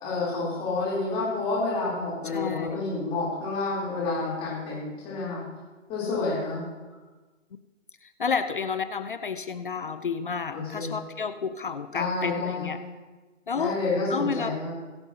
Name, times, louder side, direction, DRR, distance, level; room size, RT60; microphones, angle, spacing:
voice 1, 0.0-5.4 5.9-6.6 10.5-10.9 11.9-12.7 13.5-14.7, left 3 dB, 15° left, -6 dB, 3.4 m, -29 dB
voice 2, 2.2-2.7 8.0-12.8 13.5-13.8 14.1-14.6, left 5 dB, 45° left, 11 dB, 0.5 m, -31 dB
21.5 x 8.0 x 2.8 m, 1.3 s
hypercardioid pair, 150°, 38 cm